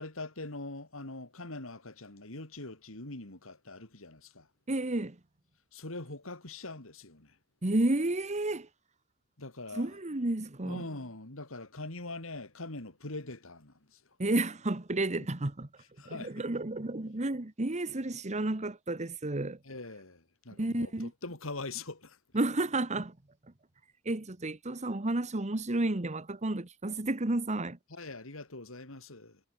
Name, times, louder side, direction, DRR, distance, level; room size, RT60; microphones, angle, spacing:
voice 1, 0.0-4.5 5.7-7.3 9.4-9.9 10.6-14.0 16.0-16.4 19.7-22.2 27.9-29.4, left 2 dB, 70° left, 3.4 m, -43 dB
voice 2, 4.7-5.2 7.6-8.7 9.7-10.9 14.2-15.7 16.0-19.6 20.5-21.1 22.3-23.2 24.0-27.8, right 2 dB, 35° right, 1.3 m, -31 dB
head